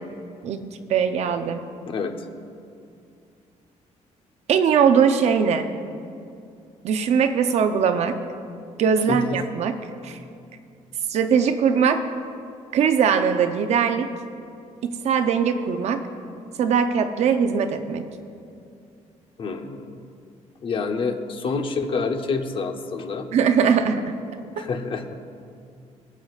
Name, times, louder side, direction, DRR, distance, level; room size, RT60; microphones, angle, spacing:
voice 1, 0.4-1.6 4.5-5.7 6.8-8.2 8.8-9.8 10.0-10.2 11.1-12.0 12.7-14.1 14.8-16.0 16.6-18.0 23.3-24.1 24.6-24.7, right 7 dB, 60° right, 8 dB, 0.6 m, -21 dB
voice 2, 9.1-9.4 19.4-20.0 20.6-23.3 24.6-25.1, left 4 dB, 45° left, 6 dB, 0.7 m, -28 dB
22.5 x 7.9 x 2.4 m, 2.4 s
cardioid pair, 160°, 13 cm